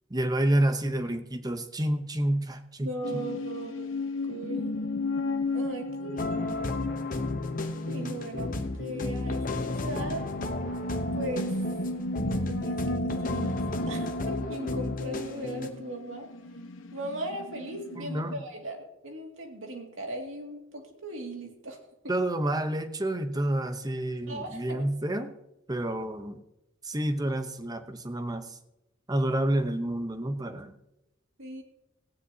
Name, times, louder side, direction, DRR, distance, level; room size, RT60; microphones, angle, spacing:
voice 1, 0.1-3.2 18.0-18.4 22.1-25.3 25.7-26.4 26.8-28.6 29.1-30.7, right 1 dB, 20° right, 9 dB, 0.8 m, -29 dB
voice 2, 2.8-3.9 4.3-4.8 5.5-6.7 7.8-10.3 11.2-11.5 12.2-13.6 13.9-16.3 16.9-21.8 24.3-24.8 31.4-31.6, right 1 dB, 75° right, 2 dB, 2.4 m, -38 dB
sound 1, 3.0-18.4, left 2 dB, 70° left, 1.0 m, -35 dB
sound 2, 6.2-15.7, left 2 dB, 40° left, 0.9 m, -33 dB
17.5 x 15.5 x 2.8 m, 0.90 s
head